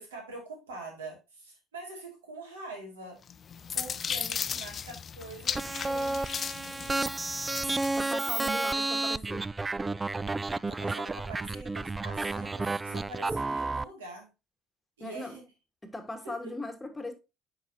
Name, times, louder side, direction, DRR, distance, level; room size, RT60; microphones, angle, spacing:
voice 1, 0.0-3.2 3.7-7.1 10.7-14.3 15.0-15.4 16.2-16.5, right 2 dB, 85° right, 2.5 m, -44 dB
sound 1, 3.3-8.0, left 7 dB, 40° left, 0.5 m, -36 dB
sound 2, 5.5-13.8, right 2 dB, 20° right, 0.3 m, -31 dB
voice 2, 7.9-9.5 15.0-15.4 15.8-17.1, left 1 dB, 15° left, 1.5 m, -39 dB
9.4 x 4.8 x 2.8 m
hypercardioid pair, 60°, 0 cm